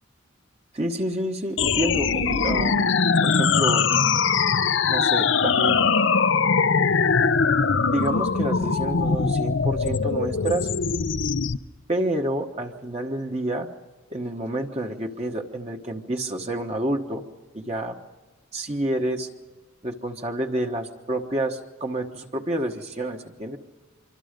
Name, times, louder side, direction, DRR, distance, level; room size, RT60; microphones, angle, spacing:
voice 1, 0.7-3.9 4.8-5.8 7.9-10.7 11.9-13.7 14.1-17.2 17.5-18.0 18.5-19.3 19.8-23.6, right 1 dB, 30° right, 3 dB, 1.2 m, -29 dB
sound 1, 1.6-11.6, left 5 dB, 65° left, 0.6 m, -21 dB
25.5 x 24.5 x 5.2 m, 1.2 s
head